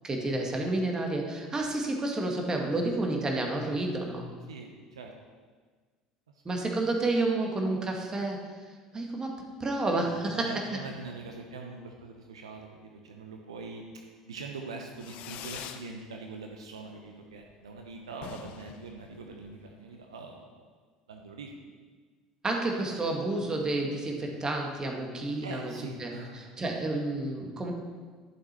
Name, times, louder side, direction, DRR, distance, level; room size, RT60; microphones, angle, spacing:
voice 1, 0.0-4.2 6.4-8.5 8.9-10.5 22.4-25.7 26.0-27.7, right 2 dB, 25° right, 1 dB, 2.1 m, -30 dB
voice 2, 4.5-5.1 6.3-6.8 9.9-20.7 21.1-21.6 25.4-26.6, right 3 dB, 75° right, 3 dB, 0.9 m, -43 dB
Fireworks, 15.0-15.9 16.2-16.8 17.1-17.2 17.4-17.5 17.8-17.9 18.1-19.8, left 10 dB, 55° left, 0.7 m, -44 dB
11.5 x 7.4 x 4.5 m, 1.5 s
figure-of-eight pair, 65°, 3 cm